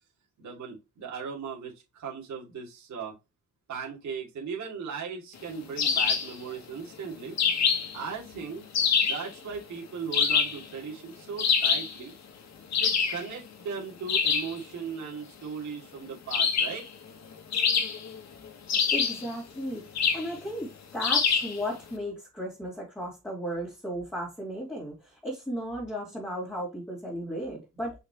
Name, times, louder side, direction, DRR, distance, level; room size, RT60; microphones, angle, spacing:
voice 1, 0.4-3.1 3.7-7.4 7.9-8.6 9.0-12.1 12.7-16.9, right 6 dB, 60° right, 2.7 m, -38 dB
sound 1, 5.8-6.3 7.4-8.0 8.7-9.3 10.1-10.6 11.4-11.9 12.7-13.2 14.1-14.5 16.3-16.8 17.5-18.2 18.7-19.3 19.9-20.3 21.0-21.6, left 6 dB, 55° left, 1.6 m, -25 dB
voice 2, 18.9-27.9, equal, 5° left, 3.1 m, -35 dB
5.7 x 5.3 x 3.1 m
wide cardioid pair, 160°, 32 cm